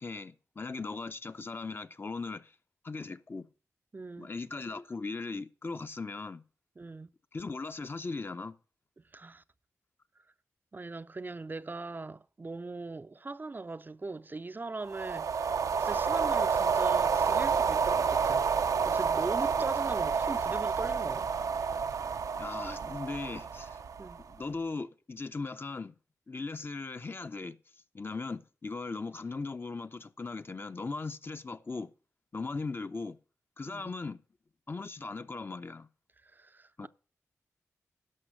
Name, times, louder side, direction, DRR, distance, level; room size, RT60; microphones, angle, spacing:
voice 1, 0.0-2.5 2.8-3.5 4.2-6.4 7.3-8.6 19.6-19.7 22.3-23.8 24.2-25.9 26.3-27.6 27.9-31.9 32.3-33.2 33.6-34.2 34.7-35.9 36.8-36.9, left 3 dB, 40° left, 0.7 m, -38 dB
voice 2, 3.9-4.3 6.8-7.1 9.1-9.4 10.7-15.5 15.8-18.5 18.9-21.3 24.0-24.2 33.7-33.9 36.2-36.9, right 3 dB, 35° right, 0.4 m, -40 dB
sound 1, 14.9-24.3, right 6 dB, 80° right, 0.5 m, -29 dB
12.0 x 5.7 x 6.4 m
cardioid pair, 55°, 6 cm